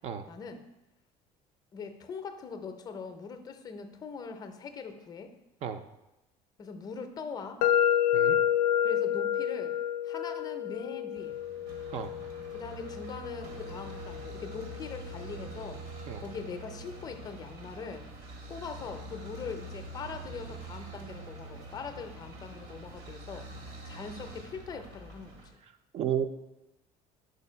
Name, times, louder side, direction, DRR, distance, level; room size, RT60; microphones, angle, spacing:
voice 1, 0.3-0.6 1.7-5.3 6.6-7.6 8.8-9.8 10.0-11.4 12.5-15.8 16.2-18.1 18.5-23.5 23.8-25.4, left 5 dB, 25° left, 7 dB, 0.5 m, -41 dB
sound 1, 7.6-15.5, left 10 dB, 85° left, 0.4 m, -30 dB
sound 2, 11.2-25.5, right 2 dB, 85° right, 1.5 m, -45 dB
voice 2, 25.9-26.3, right 9 dB, 45° right, 9 dB, 0.4 m, -32 dB
5.0 x 4.5 x 5.5 m, 0.94 s
cardioid pair, 160°, 15 cm